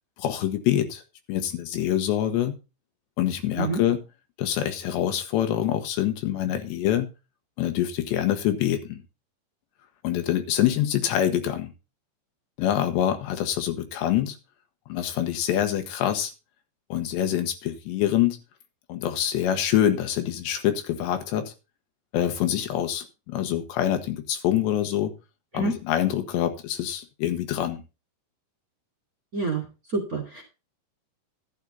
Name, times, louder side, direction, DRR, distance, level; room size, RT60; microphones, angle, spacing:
voice 1, 0.2-1.0 1.3-2.6 3.2-4.0 4.4-7.1 7.6-9.0 10.0-11.7 12.6-14.4 14.9-16.3 16.9-18.4 18.9-21.5 22.1-25.1 25.5-27.8, left 11 dB, 80° left, 7 dB, 3.4 m, -25 dB
voice 2, 29.9-30.4, right 3 dB, 25° right, 1 dB, 2.2 m, -27 dB
12.0 x 9.1 x 4.0 m, 0.29 s
omnidirectional pair, 5.0 m